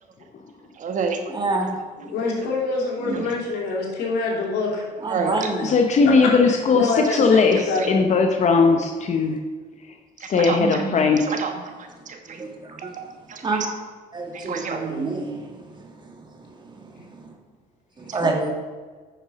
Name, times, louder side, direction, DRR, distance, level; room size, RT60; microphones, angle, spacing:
voice 1, 0.8-1.2 3.0-3.3 5.1-5.5 7.1-7.2 7.8-7.9 10.2-12.4 13.0-13.7 14.3-15.4 18.1-18.2, right 5 dB, 50° right, 5 dB, 1.3 m, -30 dB
voice 2, 1.3-1.7 5.0-5.7 12.4-12.9 13.4-13.6 14.1-15.3 18.0-18.5, right 2 dB, 25° right, 2 dB, 1.7 m, -26 dB
voice 3, 2.0-4.8 5.3-5.6 6.0-6.1 6.7-8.0, left 3 dB, 80° left, -3 dB, 3.1 m, -26 dB
voice 4, 5.6-9.4 9.9-10.0 10.3-11.5, left 4 dB, 45° left, 4 dB, 0.8 m, -19 dB
9.3 x 6.5 x 5.1 m, 1.4 s
cardioid pair, 110°, 17 cm